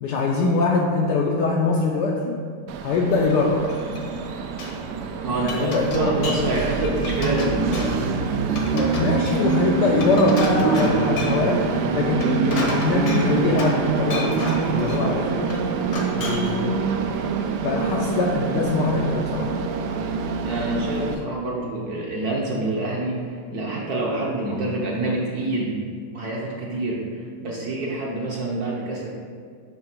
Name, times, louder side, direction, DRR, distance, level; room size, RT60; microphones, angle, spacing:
voice 1, 0.0-2.4 2.8-3.7 5.4-6.1 8.7-15.5 16.1-16.8 17.6-19.5, left 3 dB, 75° left, -1 dB, 1.0 m, -23 dB
Train, 2.7-21.1, right 5 dB, 90° right, 0.9 m, -25 dB
Glass, 3.3-4.2 4.4-4.8 5.2-6.5 6.8-8.1 8.5-11.5 12.0-13.9 14.1-15.1 15.5-16.6, left 2 dB, 50° left, 0.9 m, -33 dB
voice 2, 5.2-7.9 20.4-23.2 23.5-25.8 26.1-27.0 27.4-29.1, right 2 dB, 60° right, -3 dB, 1.1 m, -26 dB
7.6 x 3.3 x 5.9 m, 2.1 s
omnidirectional pair, 2.3 m